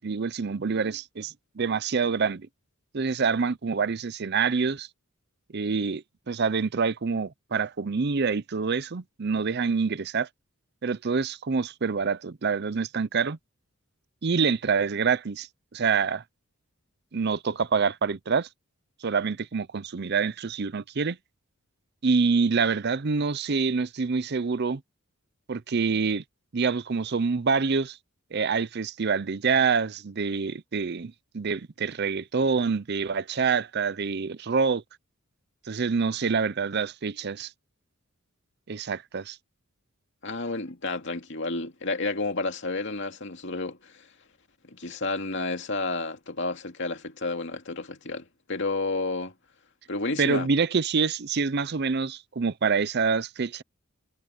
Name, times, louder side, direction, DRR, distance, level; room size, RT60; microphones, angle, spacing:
voice 1, 0.0-2.5 2.9-4.9 5.5-10.3 10.8-13.4 14.2-16.2 17.1-18.5 19.0-21.2 22.0-24.8 25.5-26.2 26.5-28.0 28.3-34.8 35.7-37.5 38.7-39.4 50.2-53.6, right 5 dB, 50° right, 0.6 m, -26 dB
voice 2, 40.2-44.1 44.7-49.3 49.9-50.5, left 3 dB, 55° left, 2.5 m, -31 dB
head